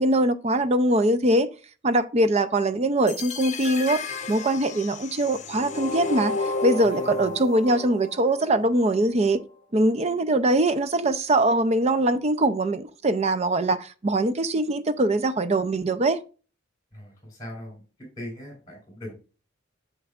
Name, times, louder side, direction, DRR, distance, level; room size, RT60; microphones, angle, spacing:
voice 1, 0.0-1.5 1.8-9.4 9.7-16.2, right 1 dB, 35° right, 0.5 m, -22 dB
sound 1, 3.1-9.1, left 3 dB, 40° left, 0.9 m, -32 dB
voice 2, 6.8-7.4 16.9-17.7 18.2-19.1, equal, 20° left, 4.2 m, -40 dB
7.7 x 6.6 x 2.4 m
head